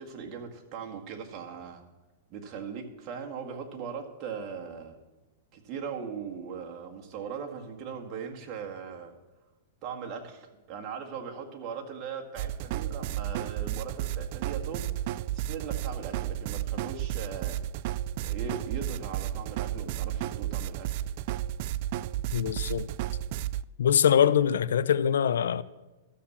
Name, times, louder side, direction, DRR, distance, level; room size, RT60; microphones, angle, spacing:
voice 1, 0.0-1.8 2.3-5.0 5.5-9.1 9.8-14.8 15.3-17.6 18.2-21.0, right 6 dB, 35° right, 1.9 m, -39 dB
sound 1, 12.4-23.6, right 12 dB, 50° right, 0.3 m, -33 dB
voice 2, 22.3-22.9 23.8-25.6, left 8 dB, 85° left, 0.5 m, -23 dB
13.0 x 7.1 x 7.4 m
hypercardioid pair, 140°, 0 cm